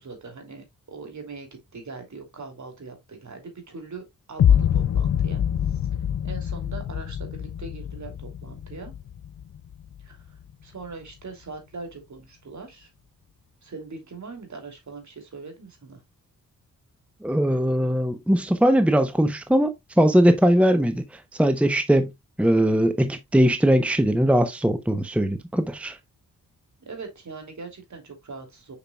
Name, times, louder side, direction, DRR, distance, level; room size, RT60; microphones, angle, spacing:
voice 1, 0.0-5.8 6.2-8.9 10.0-12.9 13.6-16.0 26.8-28.8, right 4 dB, 55° right, 3.0 m, -41 dB
sound 1, 4.4-10.4, left 9 dB, 45° left, 0.5 m, -25 dB
voice 2, 17.2-22.1 22.4-26.0, equal, 5° right, 0.9 m, -20 dB
6.8 x 5.9 x 2.4 m
cardioid pair, 50°, 35 cm